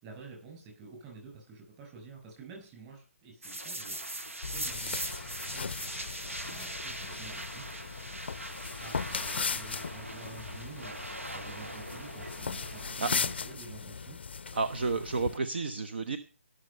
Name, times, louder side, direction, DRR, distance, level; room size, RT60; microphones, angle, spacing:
voice 1, 0.0-4.0 4.5-5.8 6.4-7.6 8.8-11.0 11.3-14.2, right 4 dB, 20° right, 1 dB, 6.5 m, -49 dB
sound 1, 3.4-13.5, right 1 dB, 75° right, 2.1 m, -41 dB
sound 2, 4.4-15.4, left 5 dB, 50° left, 0.5 m, -38 dB
voice 2, 14.5-16.2, right 4 dB, 50° right, 11 dB, 0.9 m, -31 dB
18.0 x 6.7 x 5.4 m, 0.37 s
figure-of-eight pair, 145°, 7 cm